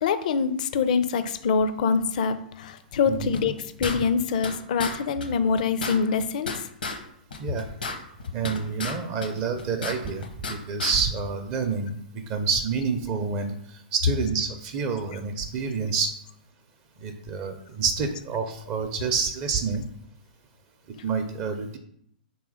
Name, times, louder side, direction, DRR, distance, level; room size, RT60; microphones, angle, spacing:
voice 1, 0.0-3.5 3.8-6.5, left 5 dB, 55° left, 11 dB, 0.4 m, -25 dB
sound 1, 3.3-4.5 4.8-4.9 5.2-5.3 5.6-7.0 7.3-8.9 9.2-10.5 10.8-10.9, left 3 dB, 80° left, 0.8 m, -33 dB
voice 2, 7.4-7.7 8.3-16.1 17.0-19.8 21.0-21.8, right 5 dB, 35° right, 6 dB, 0.5 m, -28 dB
3.4 x 3.0 x 4.7 m, 0.69 s
figure-of-eight pair, 115°, 5 cm